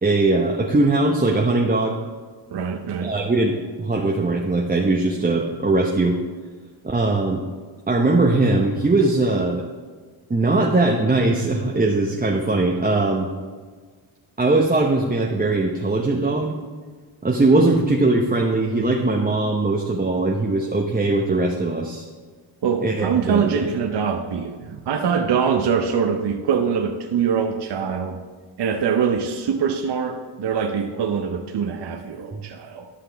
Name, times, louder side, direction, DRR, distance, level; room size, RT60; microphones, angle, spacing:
voice 1, 0.0-2.0 3.0-6.2 6.8-7.4 7.9-9.6 10.3-13.3 14.4-16.6 17.2-22.1 22.8-23.6 32.3-32.4, right 2 dB, 20° right, 0 dB, 0.8 m, -20 dB
voice 2, 2.5-3.2 22.6-28.2 28.6-32.9, right 6 dB, 60° right, 4 dB, 0.8 m, -23 dB
11.5 x 5.8 x 3.4 m, 1.5 s
cardioid pair, 60°, 47 cm